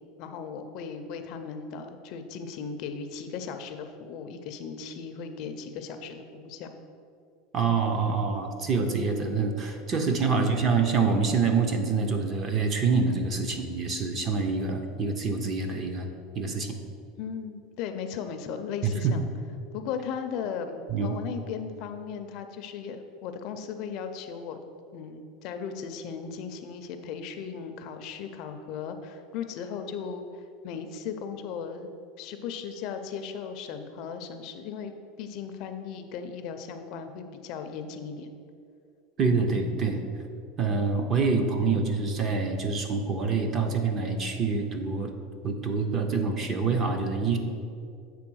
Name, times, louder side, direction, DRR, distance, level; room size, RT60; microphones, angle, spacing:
voice 1, 0.2-6.8 10.3-10.5 17.2-19.3 19.7-24.6 24.9-31.9 32.2-38.3, left 6 dB, 45° left, 7 dB, 0.5 m, -37 dB
voice 2, 7.5-16.1 16.4-16.7 18.8-19.1 20.9-21.1 39.2-40.0 40.6-45.1 45.4-47.4, right 4 dB, 25° right, 5 dB, 0.6 m, -26 dB
7.6 x 3.4 x 6.1 m, 2.4 s
supercardioid pair, 165°, 0 cm